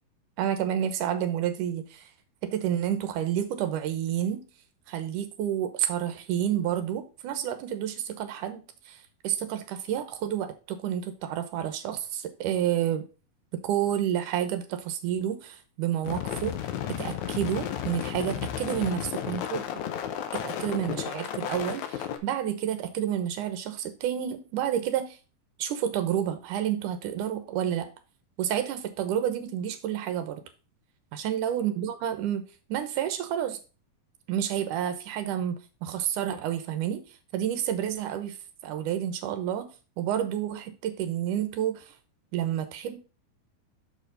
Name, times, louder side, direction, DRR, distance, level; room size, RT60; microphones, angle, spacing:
voice 1, 0.4-2.1 2.4-4.5 4.9-13.1 13.5-16.6 16.9-19.8 20.3-25.2 25.6-27.9 28.4-30.4 31.1-33.6 34.3-37.0 37.3-38.4 38.6-41.9 42.3-43.0, right 10 dB, 75° right, 2.4 m, -30 dB
sound 1, 16.0-22.2, left 10 dB, 70° left, 2.0 m, -33 dB
6.8 x 4.9 x 5.2 m
omnidirectional pair, 3.8 m